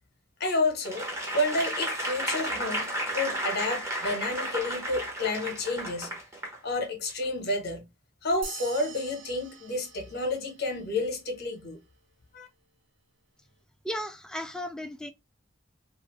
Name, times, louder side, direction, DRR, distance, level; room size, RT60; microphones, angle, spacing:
voice 1, 0.4-2.9 3.1-6.1 6.6-7.9 8.2-11.8 12.3-12.5, left 2 dB, 55° left, 0.9 m, -30 dB
Applause / Crowd, 0.8-6.6 7.1-7.2, right 1 dB, 15° right, 0.9 m, -33 dB
sound 1, 8.4-11.2, right 5 dB, 70° right, 0.7 m, -45 dB
voice 2, 13.8-15.1, equal, 5° left, 0.3 m, -35 dB
2.6 x 2.4 x 3.0 m
head